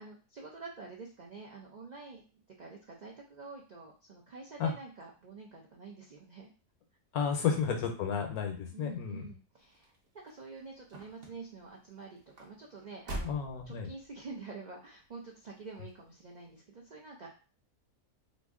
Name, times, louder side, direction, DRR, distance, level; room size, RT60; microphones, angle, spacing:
voice 1, 0.0-2.2 2.6-6.5 7.4-7.5 8.7-9.9 10.2-13.4 13.7-17.3, right 4 dB, 80° right, -2 dB, 0.4 m, -47 dB
voice 2, 7.1-9.2 13.2-13.9, left 7 dB, 80° left, 4 dB, 1.2 m, -32 dB
sound 1, 9.6-14.4 15.1-15.5 15.8-15.9, right 1 dB, 45° right, 0.8 m, -45 dB
3.0 x 2.5 x 3.6 m, 0.36 s
omnidirectional pair, 1.6 m